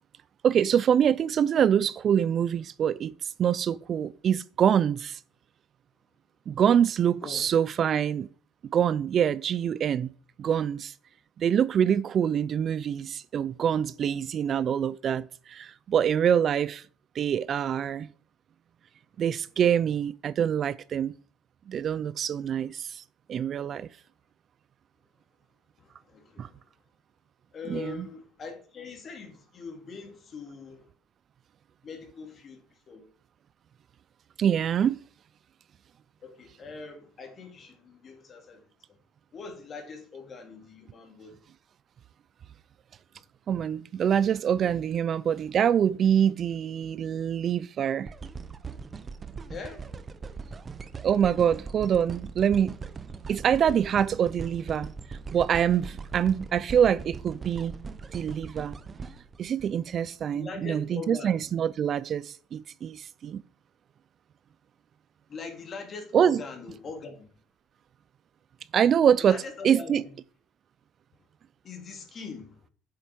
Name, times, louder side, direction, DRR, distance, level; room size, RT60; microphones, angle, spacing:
voice 1, 0.4-5.2 6.5-8.3 8.7-10.1 10.4-10.9 11.4-16.9 17.1-18.1 19.2-21.1 21.7-23.0 23.3-23.9 26.4-26.5 27.7-28.1 34.4-35.0 43.5-48.1 51.0-52.7 53.3-57.7 58.1-58.8 59.4-63.4 66.1-66.4 68.7-70.0, right 8 dB, 35° right, 0.4 m, -25 dB
voice 2, 25.8-26.6 27.5-30.8 31.8-33.1 36.2-38.7 39.3-41.4 49.5-49.9 60.2-61.4 65.3-67.3 69.2-70.1 71.6-72.6, left 5 dB, 35° left, 2.7 m, -42 dB
sound 1, 48.1-60.3 60.8-60.9, right 5 dB, 20° right, 0.8 m, -40 dB
8.5 x 7.8 x 5.2 m
cardioid pair, 145°, 0 cm